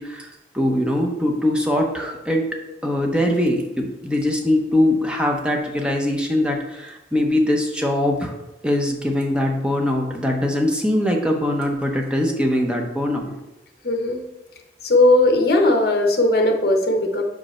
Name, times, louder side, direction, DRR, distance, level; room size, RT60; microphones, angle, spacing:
voice 1, 0.0-2.5 2.8-8.3 8.6-13.3, left 1 dB, 5° right, 1 dB, 0.8 m, -22 dB
voice 2, 13.8-14.2 14.8-17.2, left 2 dB, 60° left, 3 dB, 1.0 m, -17 dB
5.3 x 5.1 x 4.3 m, 0.97 s
head